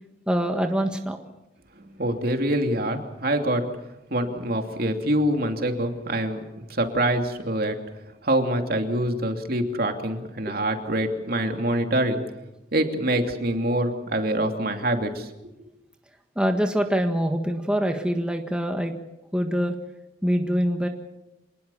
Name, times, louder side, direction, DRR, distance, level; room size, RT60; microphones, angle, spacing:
voice 1, 0.3-1.2 16.3-18.9 19.3-19.7 20.2-20.9, equal, 5° right, 4 dB, 1.6 m, -24 dB
voice 2, 1.8-3.6 4.1-6.4 6.7-7.7 8.2-12.2 12.7-15.3 15.6-15.7, right 1 dB, 50° right, 5 dB, 2.8 m, -25 dB
27.0 x 19.5 x 7.1 m, 0.95 s
head